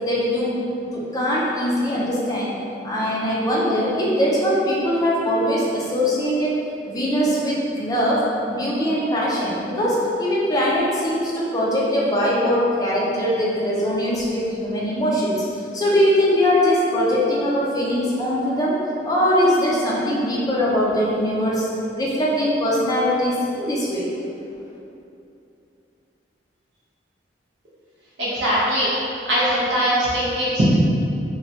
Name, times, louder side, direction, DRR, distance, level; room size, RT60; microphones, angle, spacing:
voice 1, 0.0-2.5 2.8-6.5 6.9-8.2 8.5-15.4 15.7-18.8 19.0-21.7 21.9-24.1, equal, 20° left, -6 dB, 0.5 m, -21 dB
voice 2, 28.2-28.9 29.3-30.7, equal, 75° right, -9 dB, 0.6 m, -20 dB
3.1 x 2.2 x 2.8 m, 2.6 s
head